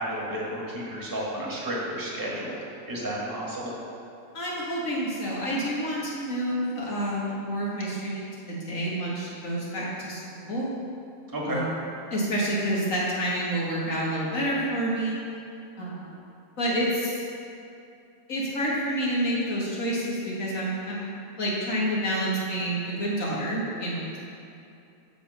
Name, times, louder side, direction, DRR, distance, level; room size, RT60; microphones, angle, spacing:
voice 1, 0.0-2.6 2.9-3.7 11.3-11.6, right 1 dB, 15° right, -5 dB, 1.4 m, -32 dB
voice 2, 4.3-10.7 11.5-11.8 12.1-15.2 15.8-16.2 16.6-17.2 18.3-24.2, right 1 dB, 70° left, -6 dB, 2.0 m, -28 dB
6.7 x 5.9 x 5.4 m, 2.6 s
omnidirectional pair, 1.4 m